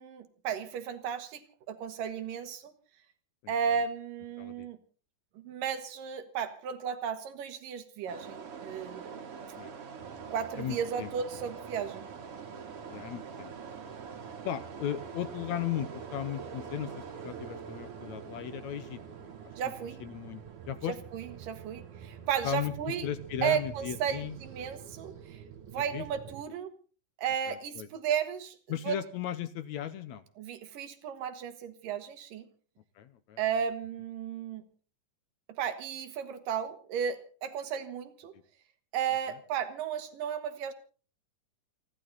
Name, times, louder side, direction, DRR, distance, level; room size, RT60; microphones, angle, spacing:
voice 1, 0.0-2.7 3.5-4.8 5.4-9.2 10.3-12.1 19.6-20.0 20.9-23.1 23.4-25.4 25.7-26.7 27.2-28.6 28.8-29.0 30.4-32.5 33.4-34.6 35.5-38.3 38.9-40.7, right 8 dB, 85° right, 9 dB, 3.2 m, -34 dB
voice 2, 3.4-3.8 4.4-4.7 9.6-9.8 10.6-11.1 12.9-13.5 14.4-19.5 20.0-21.0 22.4-22.7 23.0-24.4 25.9-26.0 27.5-27.9 28.7-30.2 33.0-33.4 38.3-38.4, left 11 dB, 70° left, 13 dB, 2.0 m, -36 dB
sound 1, 8.1-25.7, right 6 dB, 50° right, 2.5 m, -47 dB
sound 2, 10.0-26.4, right 7 dB, 70° right, 2.5 m, -48 dB
28.5 x 11.5 x 4.1 m, 0.39 s
omnidirectional pair, 3.8 m